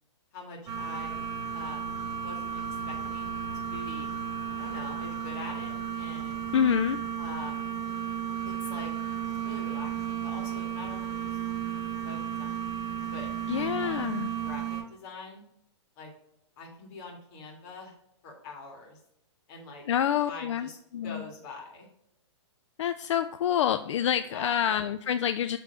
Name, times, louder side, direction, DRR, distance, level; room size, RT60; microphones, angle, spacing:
voice 1, 0.3-1.3 1.5-4.2 4.6-6.5 7.2-7.8 8.4-8.9 9.4-11.4 12.0-12.7 13.1-14.1 14.4-15.4 16.0-16.1 16.6-17.9 18.2-19.0 19.5-19.8 20.2-20.8 21.0-21.9 24.3-24.6, left 3 dB, 35° left, -1 dB, 2.0 m, -44 dB
sound 1, 0.7-14.8, right 8 dB, 20° right, 1.0 m, -34 dB
voice 2, 6.5-7.0 13.5-14.3 19.9-20.7 20.9-21.2 22.8-25.6, left 9 dB, 75° left, 10 dB, 0.4 m, -27 dB
6.7 x 3.5 x 5.1 m, 0.79 s
hypercardioid pair, 160°, 16 cm